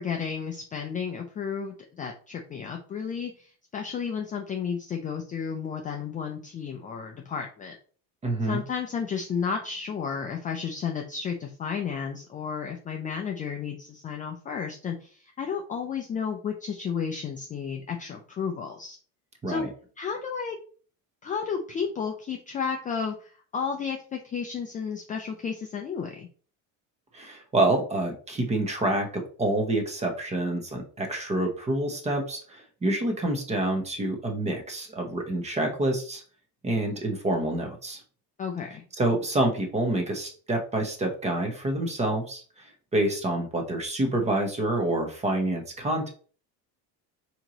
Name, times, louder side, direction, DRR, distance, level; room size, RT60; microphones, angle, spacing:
voice 1, 0.0-7.8 8.5-19.0 19.5-19.7 20.0-20.6 21.2-26.3 38.4-38.8, left 6 dB, 20° left, 2 dB, 0.3 m, -32 dB
voice 2, 8.2-8.6 19.4-19.7 27.1-36.2 36.6-38.0 39.0-42.4 42.9-46.1, right 1 dB, 15° right, 3 dB, 0.8 m, -27 dB
4.4 x 3.0 x 3.8 m, 0.41 s
cardioid pair, 160°, 41 cm